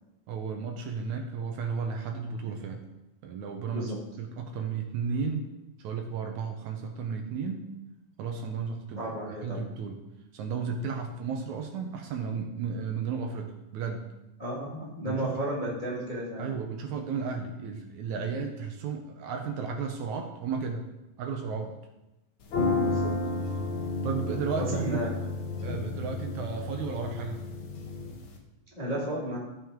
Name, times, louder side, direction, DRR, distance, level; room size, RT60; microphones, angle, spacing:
voice 1, 0.3-2.8 3.2-3.9 4.2-5.5 5.8-7.6 8.2-10.0 10.3-14.0 15.0-15.3 16.4-20.8 21.2-21.7 24.0-25.2 25.6-27.4, right 5 dB, 70° right, 3 dB, 2.1 m, -33 dB
voice 2, 9.0-9.6 14.4-16.5 22.8-23.1 24.6-25.1 28.7-29.4, right 1 dB, 20° left, -6 dB, 1.2 m, -33 dB
sound 1, 22.4-28.3, left 3 dB, 60° left, 1.4 m, -32 dB
14.0 x 5.7 x 3.7 m, 0.97 s
omnidirectional pair, 3.7 m